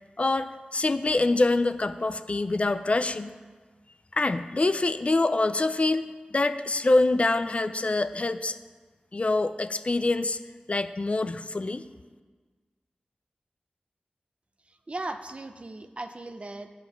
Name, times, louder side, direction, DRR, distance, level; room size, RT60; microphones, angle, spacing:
voice 1, 0.2-3.3 4.1-8.6 9.1-10.4 10.7-11.8, left 2 dB, 45° left, 11 dB, 0.5 m, -25 dB
voice 2, 14.7-16.7, right 2 dB, 40° right, 8 dB, 0.7 m, -38 dB
8.0 x 7.3 x 5.9 m, 1.4 s
cardioid pair, 45°, 3 cm